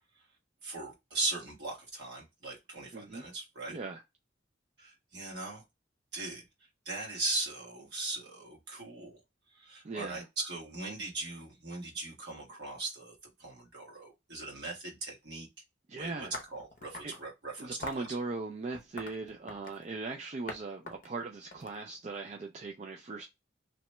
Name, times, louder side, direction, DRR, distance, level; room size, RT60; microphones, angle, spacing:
voice 1, 0.6-3.8 4.8-5.6 6.1-6.4 6.8-9.2 9.6-13.1 13.4-15.5 16.0-18.1, right 3 dB, 60° right, 1.3 m, -39 dB
voice 2, 2.9-3.3 3.7-4.0 9.8-10.3 15.9-16.3 17.0-17.1 17.6-23.2, right 3 dB, 35° right, 0.3 m, -39 dB
sound 1, 16.3-17.2 17.8-18.1 18.7-19.9 20.5-20.6 20.9-22.3, left 2 dB, 45° left, 0.6 m, -43 dB
2.9 x 2.2 x 2.9 m
head